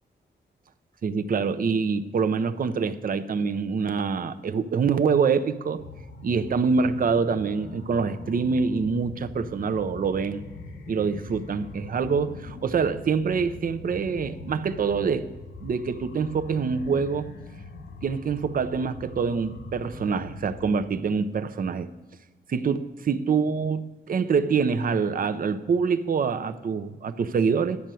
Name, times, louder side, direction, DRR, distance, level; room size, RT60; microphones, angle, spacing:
voice 1, 1.0-5.8 6.2-10.4 10.9-15.3 15.6-17.3 18.0-21.9 22.5-27.8, right 5 dB, 50° right, 10 dB, 0.6 m, -25 dB
sound 1, 5.8-20.7, left 3 dB, 75° left, 1.0 m, -42 dB
10.5 x 5.5 x 7.6 m, 1.2 s
cardioid pair, 85°, 19 cm